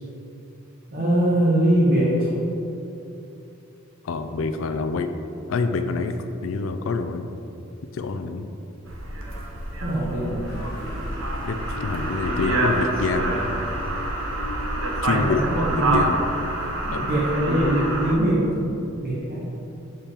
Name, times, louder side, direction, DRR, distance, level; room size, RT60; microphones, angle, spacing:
voice 1, 0.9-2.3 9.8-10.6 15.0-16.1 16.8-19.5, right 1 dB, 45° right, -7 dB, 1.0 m, -22 dB
voice 2, 4.0-5.1 5.5-7.3 7.9-8.5 11.5-13.5 15.0-15.4 15.7-16.2 16.9-17.1, left 4 dB, 70° left, 8 dB, 0.4 m, -26 dB
sound 1, 8.9-18.1, right 1 dB, 75° right, 0.8 m, -27 dB
Motor vehicle (road) / Siren, 10.5-17.2, equal, 50° left, 1.0 m, -39 dB
7.2 x 4.4 x 3.4 m, 2.8 s
head